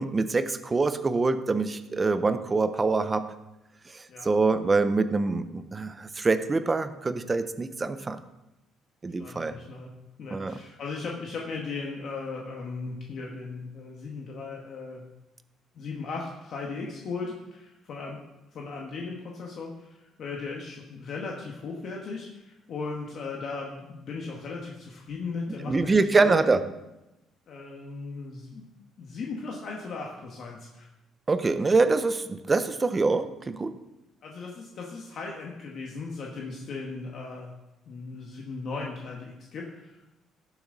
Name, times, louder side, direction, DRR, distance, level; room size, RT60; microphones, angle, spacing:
voice 1, 0.0-3.3 3.9-8.2 9.0-9.6 10.3-10.6 25.6-26.6 31.3-33.7, right 3 dB, 15° right, 11 dB, 0.5 m, -25 dB
voice 2, 9.2-9.9 10.2-15.1 15.7-18.2 18.5-26.4 27.5-28.7 29.0-30.9 34.2-37.5 37.9-40.0, left 4 dB, 45° left, -1 dB, 1.4 m, -37 dB
18.0 x 7.1 x 3.9 m, 0.95 s
cardioid pair, 170°, 0 cm